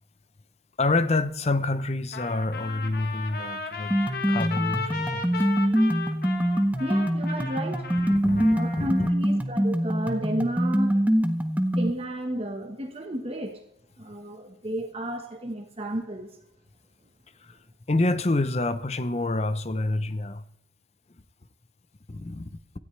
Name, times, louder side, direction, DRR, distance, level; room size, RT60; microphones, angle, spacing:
voice 1, 0.8-4.0 4.3-5.5 8.1-9.1 17.4-17.6 17.9-20.4 22.1-22.6, left 2 dB, 35° left, 0.6 m, -27 dB
Trumpet, 2.1-9.1, left 5 dB, 55° left, 1.6 m, -35 dB
sound 1, 3.9-11.9, equal, 10° right, 0.8 m, -24 dB
voice 2, 6.5-8.1 8.5-11.1 11.8-13.6 14.0-16.3, right 1 dB, 30° right, 1.2 m, -32 dB
18.0 x 13.0 x 3.3 m
head